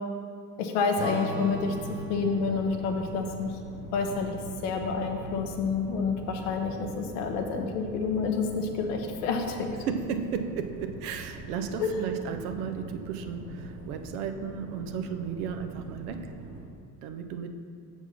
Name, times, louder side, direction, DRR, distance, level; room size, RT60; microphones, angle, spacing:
voice 1, 0.6-3.5 3.9-4.3 4.6-9.7 11.8-12.0, left 4 dB, 75° left, 4 dB, 0.9 m, -29 dB
Strum, 1.0-5.6, left 1 dB, 25° right, 1.2 m, -41 dB
sound 1, 1.5-16.7, right 2 dB, 40° right, 1.4 m, -43 dB
voice 2, 9.9-16.3 17.0-17.5, right 6 dB, 75° right, 7 dB, 0.7 m, -34 dB
6.8 x 4.5 x 5.7 m, 2.2 s
hypercardioid pair, 60°, 46 cm